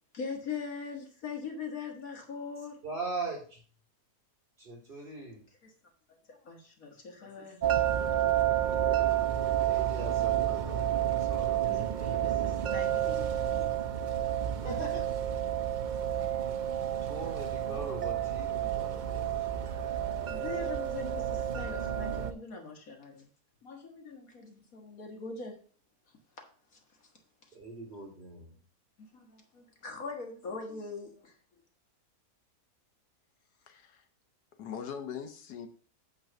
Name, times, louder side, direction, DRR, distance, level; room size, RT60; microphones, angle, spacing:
voice 1, 0.1-2.8 5.6-5.7 6.1-8.3 11.6-13.7 17.6-17.8 20.3-23.3 23.6-25.6 26.7-27.1 29.0-31.3, left 4 dB, 60° left, 2 dB, 1.8 m, -42 dB
voice 2, 2.8-3.6 4.6-5.4 9.6-11.7 14.6-15.1 17.0-19.9 27.5-28.5, right 3 dB, 35° right, -4 dB, 4.4 m, -41 dB
sound 1, 7.6-22.3, right 11 dB, 75° right, 0.4 m, -30 dB
voice 3, 33.6-34.1 34.6-35.7, left 7 dB, 80° left, 7 dB, 1.6 m, -41 dB
8.9 x 4.0 x 6.6 m, 0.42 s
omnidirectional pair, 1.7 m